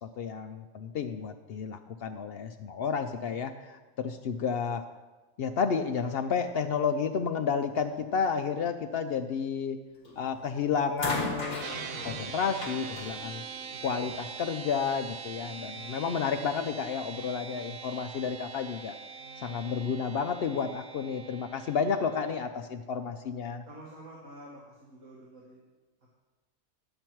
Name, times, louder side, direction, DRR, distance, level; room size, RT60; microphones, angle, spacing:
voice 1, 0.0-4.9 5.4-9.8 10.2-13.4 13.8-19.0 19.4-23.6, left 6 dB, 65° left, 8 dB, 0.6 m, -31 dB
sound 1, 10.0-10.4 11.0-14.2 15.3-15.4, left 1 dB, 35° left, 1.7 m, -37 dB
sound 2, 11.6-22.4, right 6 dB, 80° right, 1.1 m, -43 dB
voice 2, 23.7-25.6, right 1 dB, 65° right, -5 dB, 1.9 m, -48 dB
10.5 x 7.9 x 4.5 m, 1.2 s
omnidirectional pair, 1.5 m